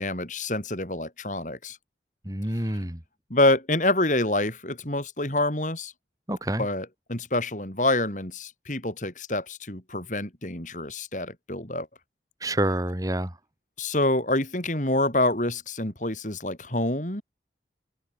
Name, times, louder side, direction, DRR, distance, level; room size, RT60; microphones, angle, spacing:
voice 1, 0.0-1.8 3.3-5.9 6.6-11.9 13.8-17.2, left 2 dB, 45° left, 5.2 m, -27 dB
voice 2, 2.2-3.0 6.3-6.7 12.4-13.4, right 1 dB, 20° right, 2.8 m, -27 dB
head